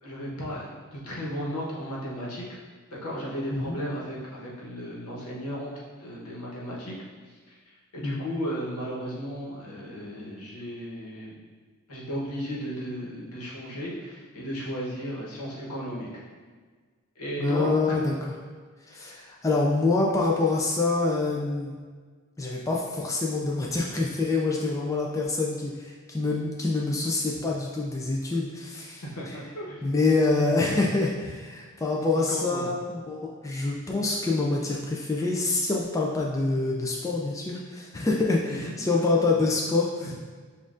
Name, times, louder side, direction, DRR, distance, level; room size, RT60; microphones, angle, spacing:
voice 1, 0.0-2.6 3.0-5.7 6.0-6.9 7.9-11.4 11.9-16.2 17.2-18.0 29.1-29.8 32.3-32.7 38.5-38.8 40.0-40.1, equal, 80° left, -4 dB, 1.1 m, -34 dB
voice 2, 17.4-18.1 18.9-21.8 22.4-29.3 29.8-40.1, left 3 dB, 15° left, -2 dB, 0.3 m, -26 dB
7.2 x 2.5 x 2.5 m, 1.5 s
head